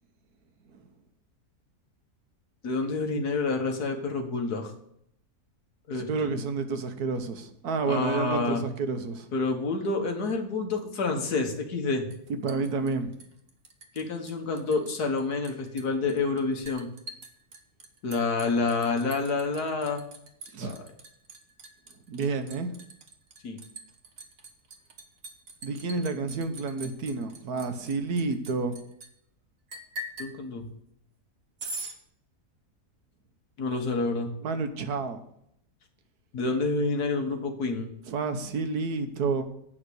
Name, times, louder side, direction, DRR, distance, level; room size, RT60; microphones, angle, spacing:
voice 1, 2.6-4.7 5.9-6.3 7.8-8.6 9.3-12.0 13.9-16.9 18.0-20.0 20.6-20.8 23.4-23.6 30.2-30.7 33.6-34.3 36.3-37.9, left 3 dB, 90° left, 2.1 m, -28 dB
voice 2, 5.9-9.3 12.4-13.1 20.5-20.8 22.1-22.7 25.6-28.8 34.4-35.2 38.1-39.4, right 4 dB, 75° right, 1.6 m, -30 dB
Liquid, 12.1-14.0 14.3-14.9 15.2-29.1 29.7-30.3 31.6-32.0, right 1 dB, 60° right, 1.8 m, -43 dB
9.0 x 5.9 x 8.2 m
omnidirectional pair, 1.6 m